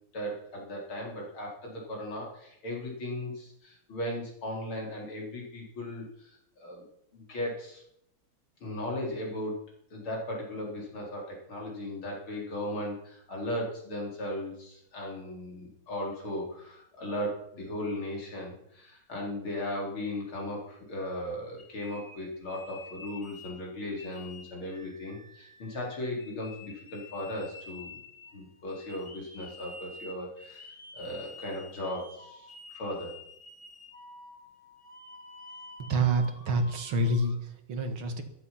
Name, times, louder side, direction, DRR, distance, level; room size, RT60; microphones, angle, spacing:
voice 1, 0.1-6.8 7.1-7.8 8.6-9.6 9.9-28.0 28.3-33.1, left 1 dB, 80° left, -2 dB, 4.7 m, -37 dB
sound 1, 21.0-23.6 24.0-37.4, left 3 dB, 25° left, 1.9 m, -50 dB
voice 2, 35.9-38.2, right 2 dB, 75° right, 6 dB, 2.5 m, -27 dB
13.5 x 12.0 x 5.8 m, 0.74 s
omnidirectional pair, 2.2 m